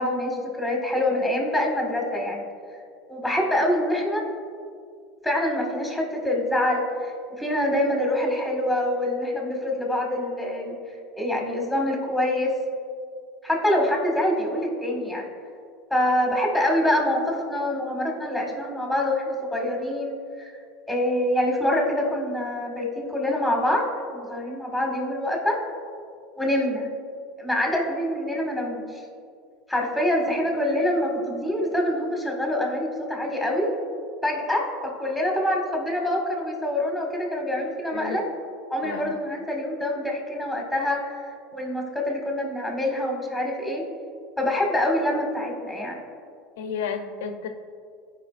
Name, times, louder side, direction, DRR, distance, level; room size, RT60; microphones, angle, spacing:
voice 1, 0.0-2.4 3.1-4.2 5.2-10.7 11.1-12.5 13.4-15.3 15.9-20.5 20.9-25.6 26.3-26.9 27.4-29.0 29.7-33.7 34.2-38.2 38.7-43.9 44.4-46.0, left 1 dB, ahead, -1 dB, 1.7 m, -25 dB
voice 2, 38.8-39.1 46.6-47.5, left 6 dB, 85° left, 6 dB, 0.7 m, -32 dB
15.0 x 5.3 x 2.5 m, 2.2 s
supercardioid pair, 125°, 0 cm